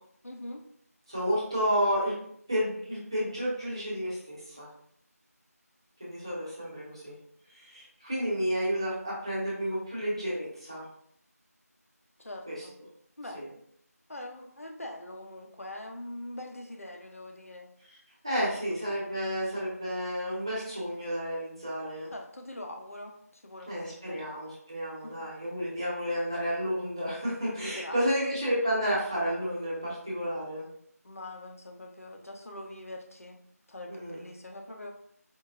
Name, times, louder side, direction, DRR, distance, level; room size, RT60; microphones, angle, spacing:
voice 1, 0.2-0.6 12.2-12.8 13.2-13.6 14.1-17.7 22.1-24.2 25.0-25.2 27.6-28.0 31.0-33.4 33.7-34.9, left 1 dB, 60° left, 2 dB, 0.7 m, -43 dB
voice 2, 1.1-2.1 2.5-4.7 6.0-7.1 7.5-10.8 12.5-12.6 13.3-13.5 18.2-22.1 23.7-30.6 33.9-34.2, equal, 20° right, -8 dB, 0.8 m, -31 dB
4.5 x 2.6 x 2.5 m, 0.66 s
figure-of-eight pair, 175°, 9 cm